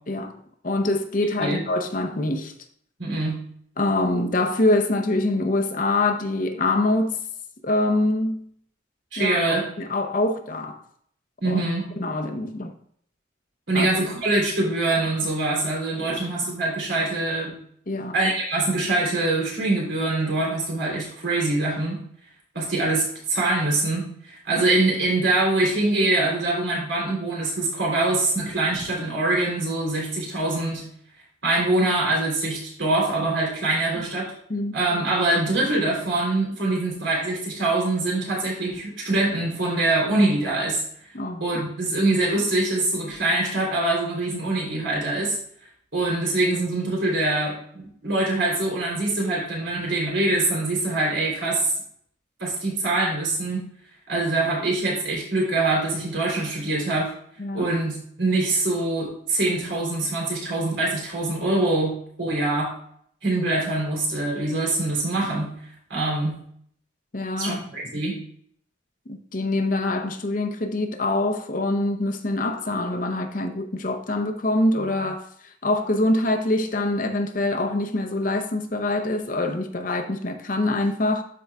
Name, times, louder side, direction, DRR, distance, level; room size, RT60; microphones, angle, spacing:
voice 1, 0.1-2.5 3.8-7.2 7.6-8.5 9.2-9.4 9.8-10.8 11.4-11.6 12.0-12.7 13.7-13.9 16.0-16.2 17.9-18.1 34.5-34.7 41.1-41.4 57.4-57.7 67.1-67.6 69.1-75.2 75.6-81.2, left 2 dB, 45° left, 0.7 m, -24 dB
voice 2, 3.0-3.4 9.1-9.7 11.4-11.9 13.7-17.6 18.1-22.0 22.5-30.8 31.4-34.3 34.7-40.8 41.4-45.4 45.9-51.7 52.4-53.6 54.1-57.1 57.5-62.7 63.2-65.5 65.9-66.4 67.4-68.2, right 2 dB, 75° right, 3.3 m, -24 dB
12.5 x 4.6 x 2.3 m
head